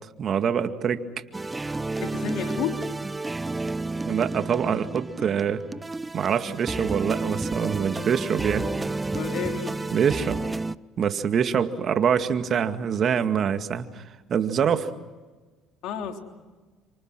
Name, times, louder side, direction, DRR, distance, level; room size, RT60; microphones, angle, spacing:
voice 1, 0.2-1.0 4.1-5.6 6.1-8.7 9.9-10.4 11.0-14.0 14.3-14.9, right 7 dB, 50° right, 8 dB, 2.1 m, -25 dB
sound 1, 1.3-10.8, right 3 dB, 20° right, 0.7 m, -31 dB
voice 2, 2.0-2.9 9.1-9.8 15.8-16.2, left 8 dB, 70° left, 4 dB, 3.5 m, -31 dB
29.5 x 26.5 x 6.3 m, 1.3 s
supercardioid pair, 70°, 0 cm